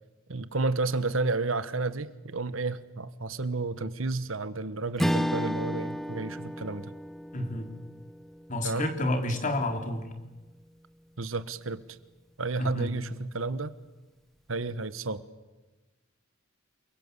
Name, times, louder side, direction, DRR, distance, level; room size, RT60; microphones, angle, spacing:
voice 1, 0.3-6.9 8.6-8.9 11.2-11.8 12.4-13.7 14.5-15.2, right 3 dB, 70° right, 14 dB, 1.3 m, -31 dB
Strum, 5.0-9.6, equal, ahead, 0.8 m, -33 dB
voice 2, 7.3-7.7 8.5-10.0 12.6-12.9, left 1 dB, 40° left, 5 dB, 3.6 m, -29 dB
28.5 x 22.5 x 8.3 m, 1.2 s
head